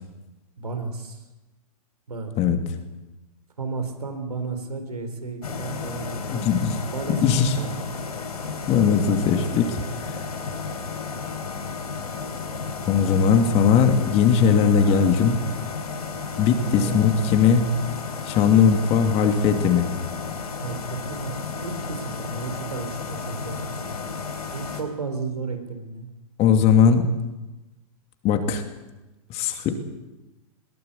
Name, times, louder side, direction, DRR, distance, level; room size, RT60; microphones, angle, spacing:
voice 1, 0.6-1.2 2.1-2.3 3.6-6.5 6.9-7.2 7.6-7.7 16.7-17.0 20.6-21.3 21.6-23.8 24.5-26.1, right 4 dB, 85° right, 6 dB, 4.3 m, -33 dB
sound 1, 5.4-24.8, left 4 dB, 80° left, 3.9 m, -33 dB
voice 2, 6.3-6.7 7.2-7.5 8.7-9.8 12.8-15.4 16.4-17.7 18.3-19.9 26.4-27.1 28.2-28.6 29.3-29.7, left 7 dB, 35° left, 6 dB, 2.8 m, -19 dB
21.0 x 17.0 x 8.4 m, 1.1 s
hypercardioid pair, 115°, 19 cm